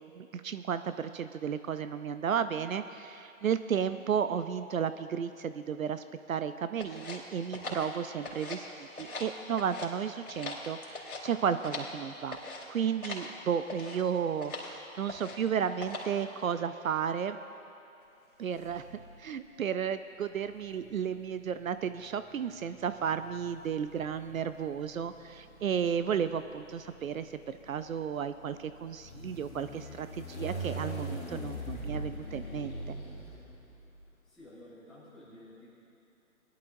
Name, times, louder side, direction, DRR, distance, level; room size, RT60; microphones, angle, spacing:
voice 1, 0.1-12.4 12.7-17.4 18.4-18.8 19.2-33.0, right 7 dB, 70° right, 11 dB, 0.6 m, -33 dB
sound 1, 6.8-8.7 8.9-9.9 10.2-12.0 12.3-12.7 13.0-13.3 13.7-14.0 14.4-14.7 15.1-15.5 15.8-16.2, left 2 dB, 80° left, 3.3 m, -41 dB
sound 2, 18.6-19.3 20.3-34.0, right 1 dB, 20° left, 2.9 m, -43 dB
voice 2, 34.3-35.7, left 1 dB, ahead, -11 dB, 1.5 m, -52 dB
20.0 x 11.5 x 2.6 m, 2.8 s
hypercardioid pair, 160°, 43 cm